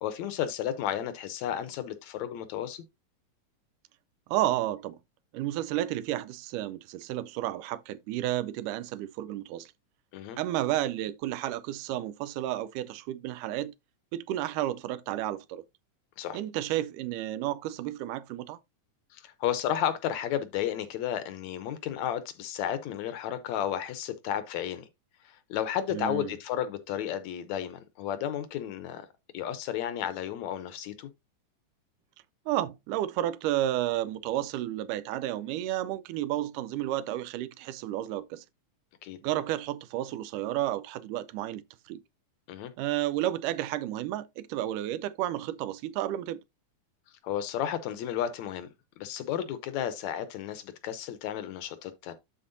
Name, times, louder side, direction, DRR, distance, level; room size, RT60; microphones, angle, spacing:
voice 1, 0.0-2.8 10.1-10.4 16.2-16.4 19.1-24.9 25.3-29.1 29.3-31.1 39.0-39.2 42.5-42.7 47.2-48.7 49.0-52.1, left 10 dB, 75° left, 1.9 m, -33 dB
voice 2, 4.3-5.0 5.3-9.7 10.4-13.7 14.1-15.6 16.3-18.6 25.9-26.3 32.5-38.4 39.2-42.0 42.8-46.4, right 13 dB, 90° right, 2.1 m, -32 dB
12.5 x 4.3 x 2.6 m
omnidirectional pair, 3.6 m